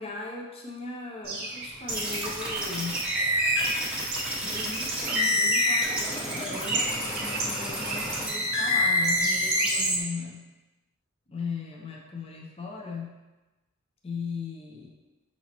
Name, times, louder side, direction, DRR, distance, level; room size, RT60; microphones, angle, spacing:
voice 1, 0.0-3.0 4.4-10.4 11.3-13.1 14.0-14.9, left 4 dB, 30° left, -1 dB, 0.6 m, -38 dB
Bird, 1.2-10.0, right 3 dB, 45° right, 0.7 m, -35 dB
sound 1, 1.9-10.0, left 1 dB, 5° right, 0.8 m, -27 dB
5.5 x 2.9 x 2.9 m, 1.1 s
head